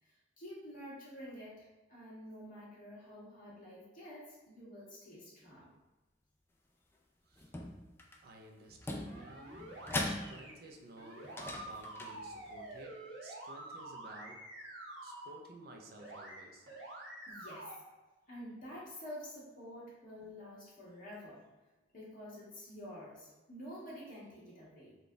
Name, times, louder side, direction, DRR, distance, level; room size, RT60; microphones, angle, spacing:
voice 1, 0.0-5.7 17.3-17.7 18.3-21.4 21.9-25.0, equal, 45° left, -7 dB, 1.5 m, -49 dB
sound 1, 7.3-8.2 8.7-10.7 11.2-12.6, left 1 dB, 10° left, 0.3 m, -41 dB
voice 2, 8.2-9.6 10.0-14.5 15.0-16.7, right 1 dB, 55° right, 2 dB, 0.5 m, -54 dB
sound 2, 9.1-10.5 11.0-15.3 16.0-16.4 16.7-17.7, right 1 dB, 75° right, 1.1 m, -48 dB
3.8 x 2.3 x 3.8 m, 1.1 s
head